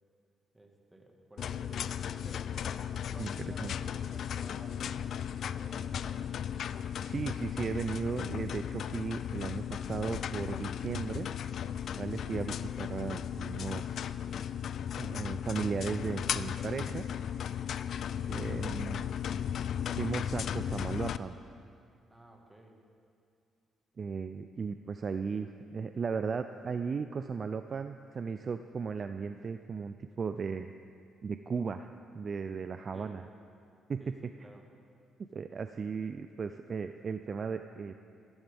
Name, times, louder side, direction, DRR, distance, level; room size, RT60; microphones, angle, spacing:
voice 1, 0.5-2.6 3.1-5.1 5.5-6.3 22.1-22.8 32.9-33.2 34.0-34.6, right 1 dB, 10° right, 2 dB, 1.7 m, -53 dB
sound 1, 1.4-21.2, left 9 dB, 65° left, 0.3 m, -36 dB
voice 2, 7.0-11.7 12.0-14.1 15.0-17.0 18.3-19.0 20.0-21.4 24.0-30.7 31.2-33.3 33.9-34.3 35.3-37.9, right 5 dB, 45° right, 9 dB, 0.4 m, -36 dB
14.5 x 13.5 x 3.5 m, 2.4 s
cardioid pair, 90°, 0 cm